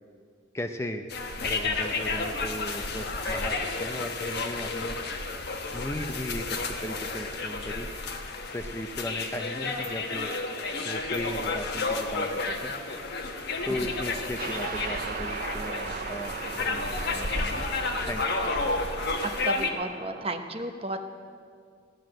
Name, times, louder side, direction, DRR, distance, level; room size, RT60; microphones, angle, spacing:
voice 1, 0.5-1.1 1.4-5.0 5.7-7.9 8.5-10.3 10.8-12.7 13.6-17.7 18.0-18.2, left 1 dB, 15° left, 6 dB, 0.6 m, -36 dB
sound 1, 1.1-19.7, left 3 dB, 55° left, 1.3 m, -31 dB
sound 2, 14.4-20.4, right 6 dB, 45° right, 0.5 m, -38 dB
voice 2, 19.2-21.0, right 2 dB, 30° right, 6 dB, 1.0 m, -33 dB
16.5 x 11.0 x 7.7 m, 2.1 s
head